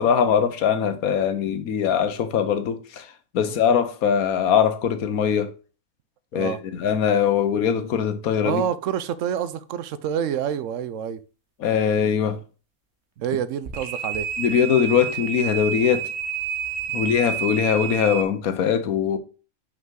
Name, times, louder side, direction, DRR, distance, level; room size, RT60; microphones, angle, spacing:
voice 1, 0.0-3.1 3.3-5.5 6.3-8.6 11.6-12.4 14.4-16.1 16.9-19.2, left 8 dB, 85° left, 1.3 m, -21 dB
voice 2, 8.4-11.2 13.2-14.3 16.9-17.1, right 9 dB, 70° right, 0.9 m, -27 dB
sound 1, 13.6-18.2, right 8 dB, 55° right, 1.3 m, -29 dB
5.6 x 5.4 x 3.7 m
omnidirectional pair, 1.5 m